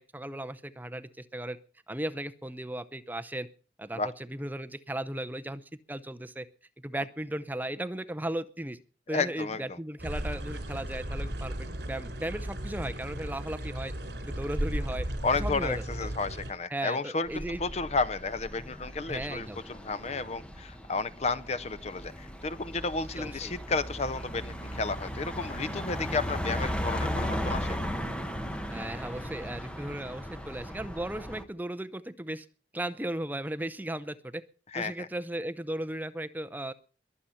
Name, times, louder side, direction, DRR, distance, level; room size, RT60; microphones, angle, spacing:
voice 1, 0.0-1.6 1.9-3.5 3.8-4.0 4.3-5.6 5.9-6.5 6.8-8.8 9.1-13.9 14.2-15.1 15.4-15.8 16.7-17.6 19.1-19.6 23.2-23.5 28.7-32.5 32.7-34.4 34.7-36.7, right 1 dB, 10° right, 11 dB, 0.6 m, -36 dB
voice 2, 9.1-9.8 15.2-27.8 34.7-35.1, left 4 dB, 35° left, 17 dB, 0.6 m, -32 dB
sound 1, 10.0-16.5, right 1 dB, 70° right, 3.4 m, -35 dB
sound 2, 17.3-31.4, equal, 5° left, 1.2 m, -36 dB
22.0 x 7.8 x 5.7 m, 0.38 s
head